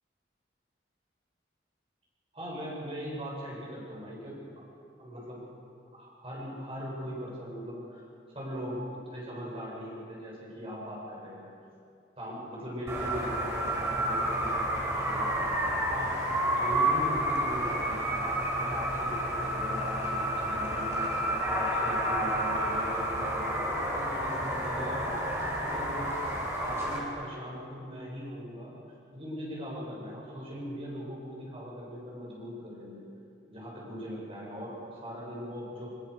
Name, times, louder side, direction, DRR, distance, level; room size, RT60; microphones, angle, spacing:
voice 1, 2.3-4.7 5.0-5.4 5.9-8.1 8.3-11.5 12.2-15.3 15.8-16.1 16.5-21.0 21.4-25.2 25.6-26.2 26.6-28.7 29.1-33.0 33.5-35.9, equal, 30° right, -4 dB, 7.7 m, -40 dB
sound 1, 12.9-27.0, right 1 dB, 15° right, 4.4 m, -30 dB
22.5 x 22.5 x 6.9 m, 2.5 s
head